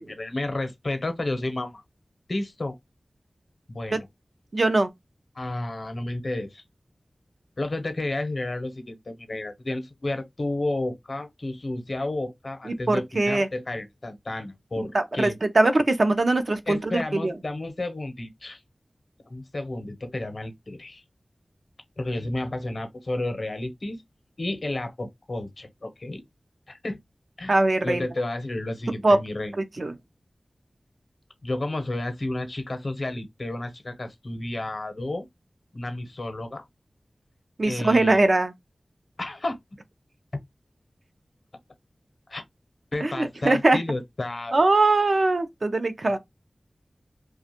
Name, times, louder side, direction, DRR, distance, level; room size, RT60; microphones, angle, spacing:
voice 1, 0.0-1.8 2.3-2.8 3.7-4.1 5.3-6.6 7.6-15.4 16.7-18.6 19.3-21.0 22.0-24.0 24.4-26.2 26.7-27.0 27.4-27.5 27.8-29.5 31.4-35.3 35.7-36.6 37.6-38.2 39.2-39.6 42.3-42.4 42.9-44.7, left 2 dB, 60° left, 0.7 m, -31 dB
voice 2, 4.5-4.9 12.7-13.5 14.8-15.3 15.5-16.8 17.1-17.3 27.5-28.1 29.0-29.2 29.6-29.9 37.6-38.5 43.0-43.8 44.5-46.2, right 2 dB, 65° right, 0.5 m, -21 dB
2.5 x 2.2 x 2.8 m
wide cardioid pair, 50°, 0 cm